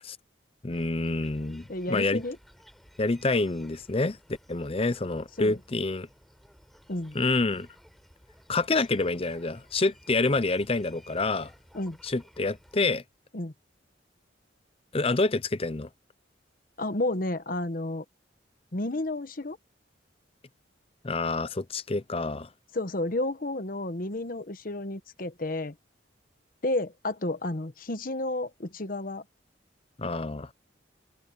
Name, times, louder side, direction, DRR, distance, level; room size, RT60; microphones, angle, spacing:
voice 1, 0.6-2.2 3.0-4.2 4.5-6.1 7.1-7.7 8.5-11.5 12.0-13.0 14.9-15.9 21.0-22.5 30.0-30.5, left 3 dB, 30° left, 0.6 m, -27 dB
sound 1, 0.7-12.9, equal, ahead, 7.4 m, -56 dB
voice 2, 1.7-2.4 5.4-5.6 6.9-7.2 11.7-12.0 13.3-13.5 16.8-18.0 18.7-19.6 22.7-25.7 26.6-29.2, left 2 dB, 50° left, 1.1 m, -31 dB
head